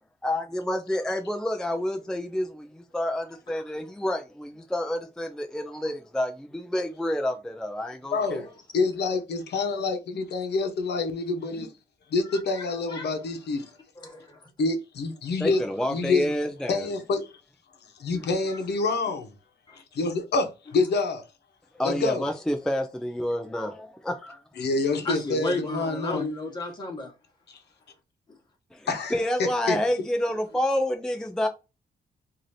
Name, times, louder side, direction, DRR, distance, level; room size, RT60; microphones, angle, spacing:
voice 1, 0.2-8.4 15.4-16.9 21.7-24.4 28.7-31.5, left 1 dB, 5° left, 0.4 m, -29 dB
voice 2, 8.1-8.5 8.7-11.7 12.1-13.8 14.6-15.6 15.9-16.3 16.7-17.3 17.8-19.4 19.7-21.3 21.8-22.2 24.6-26.3 27.5-27.6 28.9-29.8, left 3 dB, 75° left, 0.9 m, -27 dB
voice 3, 12.3-13.2 14.0-14.5 18.1-18.6 19.7-19.8 25.0-27.1, left 2 dB, 25° left, 1.4 m, -34 dB
4.7 x 2.6 x 2.7 m
wide cardioid pair, 140°, 17 cm